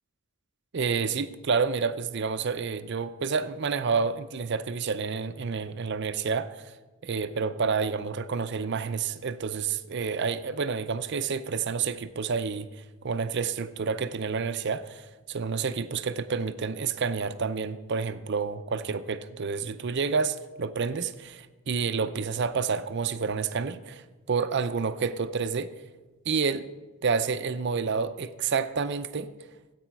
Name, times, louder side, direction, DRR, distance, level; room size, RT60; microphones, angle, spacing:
voice 1, 0.7-6.7 7.0-25.7 26.3-26.7 27.0-29.3, right 5 dB, 50° right, 0.5 m, -29 dB
14.0 x 8.4 x 4.6 m
head